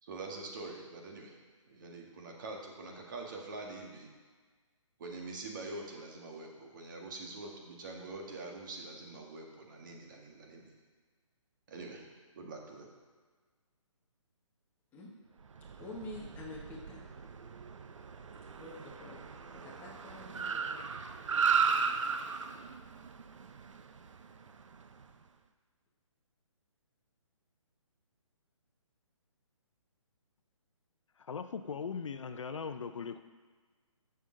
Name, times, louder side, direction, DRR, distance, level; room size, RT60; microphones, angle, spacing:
voice 1, 0.0-1.4 1.7-4.1 5.0-10.7 11.7-12.1 12.3-12.9, right 3 dB, 40° right, 0 dB, 1.6 m, -45 dB
Car, 15.5-25.0, right 6 dB, 70° right, 0.8 m, -36 dB
voice 2, 15.8-17.0 18.6-19.2 19.5-21.0, left 2 dB, 10° left, -3 dB, 1.3 m, -47 dB
voice 3, 31.2-33.2, left 6 dB, 70° left, 9 dB, 0.7 m, -39 dB
14.5 x 6.8 x 3.8 m, 1.4 s
hypercardioid pair, 165°, 17 cm